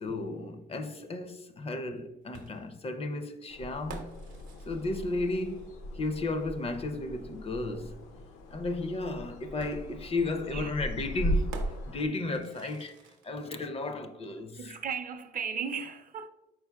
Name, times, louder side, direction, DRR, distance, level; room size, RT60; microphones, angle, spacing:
voice 1, 0.0-4.1 4.6-8.0 8.5-12.9 13.2-14.8, left 2 dB, 30° left, 0.4 m, -34 dB
sound 1, 2.3-6.0 7.5-7.6 9.6-13.5, right 4 dB, 70° right, 0.7 m, -50 dB
sound 2, 3.5-12.1, equal, 80° left, 0.6 m, -37 dB
voice 2, 14.6-16.3, right 6 dB, 40° right, 0.5 m, -36 dB
4.6 x 4.3 x 2.2 m
supercardioid pair, 80°, 21 cm